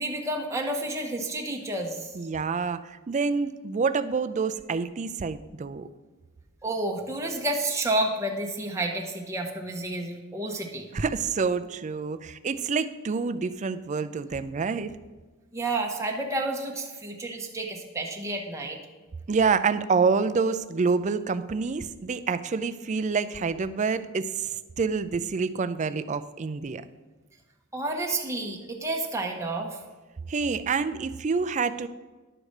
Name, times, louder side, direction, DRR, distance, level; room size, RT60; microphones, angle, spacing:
voice 1, 0.0-2.1 6.6-10.9 15.5-18.8 27.7-29.8, right 2 dB, 15° right, 1 dB, 0.9 m, -30 dB
voice 2, 2.2-5.9 10.9-14.9 19.3-26.8 30.3-31.9, right 5 dB, 35° right, 12 dB, 0.4 m, -27 dB
11.0 x 4.8 x 6.5 m, 1.3 s
head